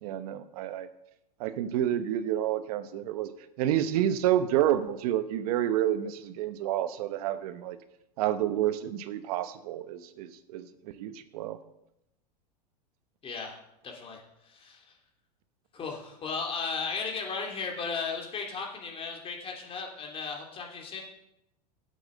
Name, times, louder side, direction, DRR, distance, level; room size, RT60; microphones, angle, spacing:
voice 1, 0.0-0.9 1.4-3.3 3.6-7.8 8.2-10.7 11.0-11.6, right 11 dB, 65° right, 12 dB, 0.9 m, -29 dB
voice 2, 13.2-13.6 13.8-14.8 15.7-21.0, left 5 dB, 25° left, 1 dB, 3.0 m, -35 dB
8.4 x 7.8 x 7.7 m, 0.83 s
hypercardioid pair, 110°, 21 cm